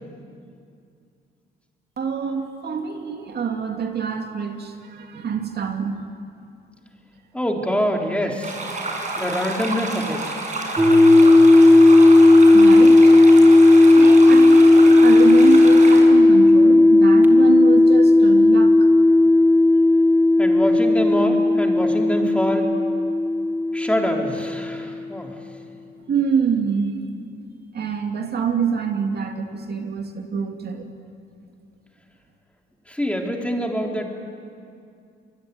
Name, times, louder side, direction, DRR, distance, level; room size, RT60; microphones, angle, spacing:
voice 1, 2.0-6.0 12.5-13.2 14.0-18.9 26.1-27.0 27.7-30.9, right 6 dB, 55° right, 4 dB, 2.5 m, -26 dB
voice 2, 7.3-8.7 9.2-10.2 20.4-22.7 23.7-25.4 32.9-34.1, equal, 5° left, 1 dB, 3.8 m, -25 dB
sound 1, 8.4-16.0, right 2 dB, 40° right, 6.8 m, -29 dB
sound 2, 10.8-24.7, left 2 dB, 10° right, 2.5 m, -13 dB
26.0 x 22.0 x 9.7 m, 2.4 s
cardioid pair, 90°, 20 cm